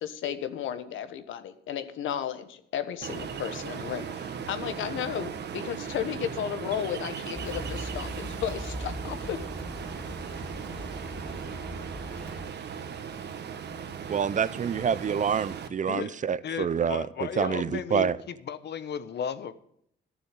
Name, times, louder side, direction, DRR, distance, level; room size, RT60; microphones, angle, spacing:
voice 1, 0.0-9.4, left 9 dB, 80° left, 11 dB, 1.3 m, -34 dB
Ocean, 3.0-15.7, right 7 dB, 60° right, 1.3 m, -38 dB
sound 1, 7.3-12.4, equal, 5° left, 1.2 m, -40 dB
voice 2, 14.1-17.1 17.4-18.2, right 7 dB, 40° right, 17 dB, 0.6 m, -27 dB
voice 3, 15.8-19.5, left 7 dB, 60° left, 13 dB, 1.1 m, -35 dB
12.5 x 7.0 x 9.0 m, 0.69 s
cardioid pair, 90°, 20 cm